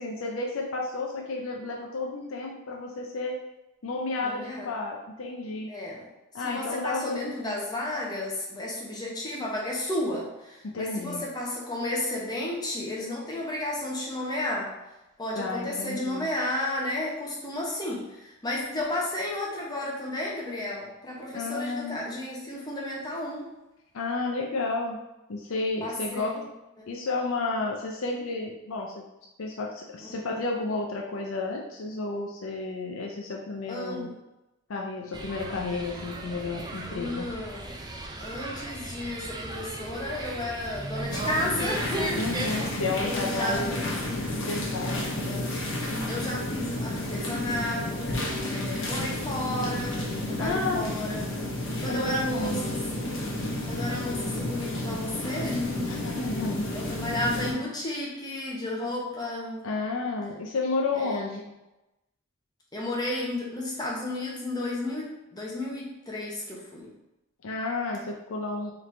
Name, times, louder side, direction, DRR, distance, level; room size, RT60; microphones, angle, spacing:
voice 1, 0.0-3.4 3.8-5.7 6.3-7.6 10.6-11.3 15.3-16.3 21.3-22.0 23.9-25.0 25.3-26.3 26.9-29.0 29.4-34.1 34.7-37.3 42.1-43.8 44.5-45.5 50.4-50.9 51.9-52.6 55.9-56.6 59.6-61.6 67.4-68.7, left 3 dB, 80° left, 0 dB, 0.5 m, -32 dB
voice 2, 4.2-4.7 5.7-6.1 6.4-14.7 15.2-23.5 25.8-26.5 33.7-34.1 36.9-37.8 38.2-42.7 43.0-44.3 44.8-45.6 46.1-51.2 51.8-56.3 56.7-59.6 61.0-61.3 62.7-66.9, left 1 dB, 20° left, -3 dB, 0.9 m, -33 dB
sound 1, 35.1-42.7, right 2 dB, 20° right, 0.4 m, -37 dB
sound 2, 41.1-57.5, left 1 dB, 65° left, 1.0 m, -31 dB
3.8 x 3.2 x 3.2 m, 0.97 s
head